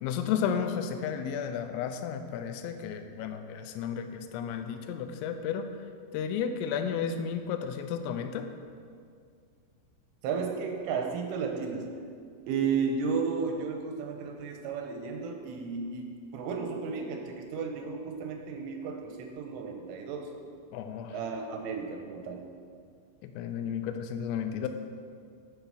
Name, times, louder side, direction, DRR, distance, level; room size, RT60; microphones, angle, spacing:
voice 1, 0.0-5.7 6.1-8.5 20.7-21.2 23.2-24.7, left 7 dB, 85° left, 7 dB, 3.2 m, -33 dB
voice 2, 10.2-11.8 12.5-20.3 21.1-22.5, right 5 dB, 85° right, 3 dB, 3.3 m, -33 dB
8.2 x 6.8 x 5.9 m, 2.2 s
omnidirectional pair, 5.7 m